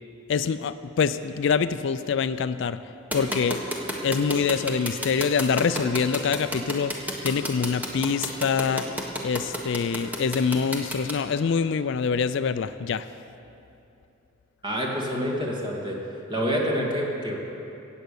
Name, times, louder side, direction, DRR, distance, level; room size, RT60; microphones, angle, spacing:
voice 1, 0.3-2.8 3.1-3.6 4.0-6.9 7.2-8.9 9.2-13.1, left 6 dB, 65° left, 13 dB, 0.4 m, -25 dB
sound 1, 3.1-11.1, equal, 10° right, 1.3 m, -30 dB
voice 2, 14.6-16.0 16.3-17.4, equal, 25° right, -2 dB, 2.2 m, -27 dB
17.5 x 8.0 x 6.8 m, 2.8 s
head